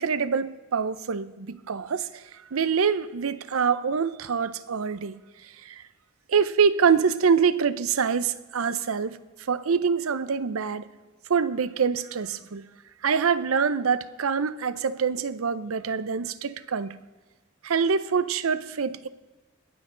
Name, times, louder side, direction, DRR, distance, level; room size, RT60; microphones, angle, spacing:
voice 1, 0.0-2.2 2.5-5.2 5.6-5.8 6.3-9.2 9.5-10.9 11.3-12.6 13.0-17.0 17.6-19.1, right 6 dB, 80° right, 0.6 m, -25 dB
20.5 x 7.7 x 3.8 m
head